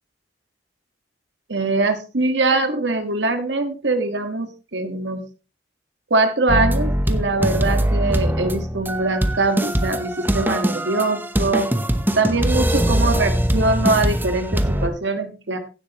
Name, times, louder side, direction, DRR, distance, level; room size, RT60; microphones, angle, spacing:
voice 1, 1.5-5.2 6.1-11.7 12.1-15.6, right 2 dB, 80° right, 7 dB, 1.6 m, -22 dB
sound 1, 6.5-14.9, right 1 dB, 10° right, 0.9 m, -22 dB
16.0 x 7.8 x 3.0 m, 0.33 s
head